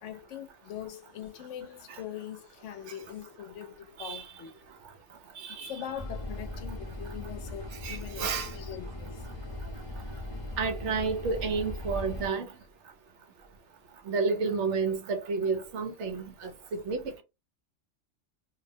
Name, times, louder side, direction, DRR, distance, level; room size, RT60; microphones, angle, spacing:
voice 1, 0.0-4.6 5.7-8.3 8.5-9.2, left 10 dB, 75° left, 0.9 m, -42 dB
voice 2, 5.4-5.9 7.8-8.6 10.6-12.5 14.1-17.2, right 4 dB, 70° right, 0.9 m, -31 dB
sound 1, 6.0-12.3, left 1 dB, 30° left, 0.6 m, -39 dB
2.5 x 2.1 x 2.7 m
omnidirectional pair, 1.3 m